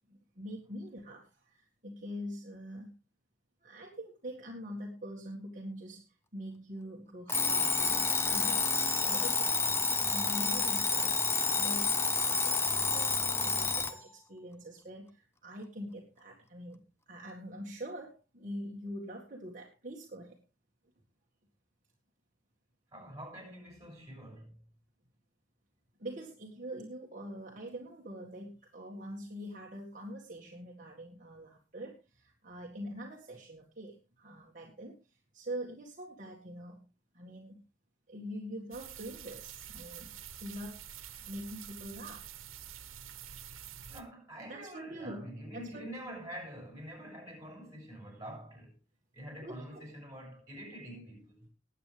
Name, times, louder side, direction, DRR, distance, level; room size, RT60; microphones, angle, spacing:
voice 1, 0.1-2.9 3.6-20.4 26.0-36.8 37.1-37.6 38.1-40.8 41.2-42.3 44.4-45.3 45.5-45.9 49.4-49.8, equal, 40° right, 1.9 m, -44 dB
Alarm, 7.3-14.0, left 4 dB, 10° left, 0.8 m, -29 dB
voice 2, 22.9-24.6 43.9-48.7 49.1-51.5, equal, 15° right, 6.9 m, -46 dB
sound 1, 38.7-44.0, right 9 dB, 90° right, 1.6 m, -47 dB
20.5 x 8.3 x 3.4 m
head